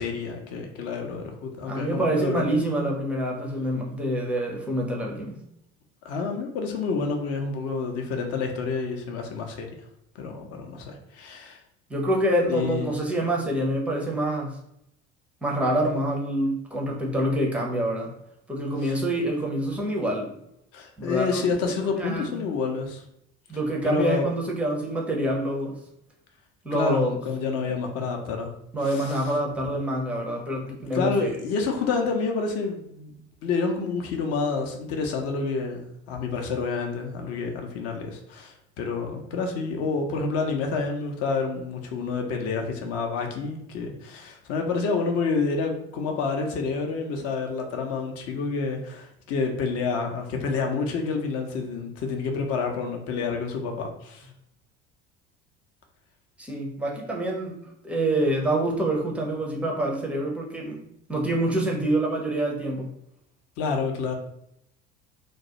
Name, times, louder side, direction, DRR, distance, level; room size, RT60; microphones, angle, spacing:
voice 1, 0.0-2.5 6.0-9.7 10.2-11.6 12.5-13.0 18.8-19.0 20.7-23.0 23.8-24.3 26.7-28.5 28.8-29.2 30.7-33.2 33.4-54.3 63.6-64.2, left 4 dB, 40° left, 2 dB, 0.5 m, -28 dB
voice 2, 1.7-5.4 11.9-14.6 15.4-18.1 18.5-20.3 21.0-21.4 22.0-22.3 23.5-25.8 26.6-27.2 28.7-31.1 56.4-57.6 57.8-60.8 61.1-62.9, right 1 dB, 5° right, -1 dB, 0.5 m, -26 dB
2.2 x 2.1 x 2.8 m, 0.77 s
figure-of-eight pair, 60°, 37 cm